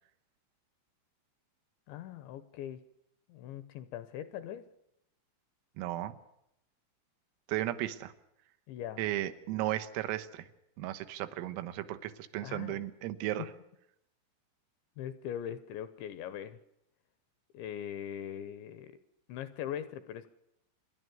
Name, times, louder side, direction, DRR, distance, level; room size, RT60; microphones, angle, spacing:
voice 1, 1.9-2.8 3.3-4.7 8.7-9.0 12.4-12.8 13.4-13.5 15.0-16.6 17.5-19.0 19.3-20.3, left 10 dB, 75° left, 14 dB, 2.8 m, -41 dB
voice 2, 5.8-6.2 7.5-8.1 9.0-10.5 10.8-13.5, right 14 dB, 85° right, 10 dB, 3.8 m, -35 dB
27.0 x 11.0 x 9.4 m, 0.81 s
omnidirectional pair, 5.9 m